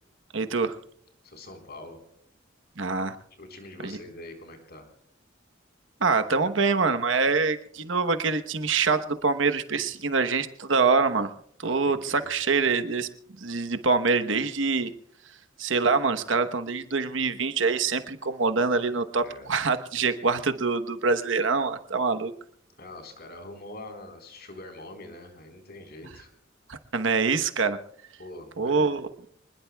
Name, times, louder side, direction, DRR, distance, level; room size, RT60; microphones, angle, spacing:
voice 1, 0.3-0.7 2.8-3.1 3.8-4.0 6.0-11.3 11.6-13.1 13.4-14.9 15.6-19.2 19.5-22.3 26.7-27.8 28.6-29.1, right 4 dB, 70° right, 8 dB, 1.1 m, -25 dB
voice 2, 1.2-2.0 3.3-4.9 11.6-12.3 19.2-19.5 22.8-26.3 28.2-28.9, left 2 dB, 55° left, 4 dB, 4.2 m, -44 dB
26.5 x 20.5 x 2.3 m, 0.67 s
head